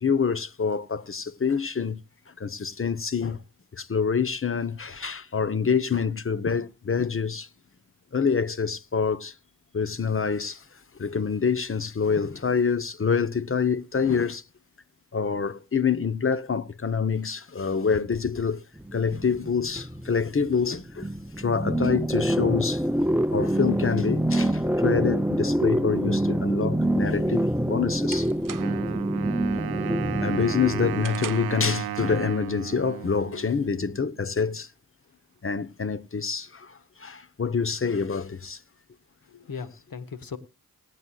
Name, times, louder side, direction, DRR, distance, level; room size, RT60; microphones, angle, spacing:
voice 1, 0.0-2.0 2.4-3.4 3.7-7.5 8.1-9.3 9.7-10.6 11.0-14.4 15.1-18.6 18.9-21.1 21.4-22.8 23.3-28.3 30.2-34.7 35.4-38.6, left 6 dB, 35° left, 1.0 m, -26 dB
sound 1, 18.8-31.0, right 1 dB, 5° right, 0.7 m, -26 dB
sound 2, 27.2-29.0 29.4-29.7 30.1-31.7, right 8 dB, 60° right, 0.9 m, -42 dB
Wind instrument woodwind instrument, 28.6-34.2, right 12 dB, 80° right, 0.6 m, -35 dB
voice 2, 39.3-40.4, left 6 dB, 65° left, 1.6 m, -38 dB
20.0 x 9.5 x 2.4 m
cardioid pair, 45°, 37 cm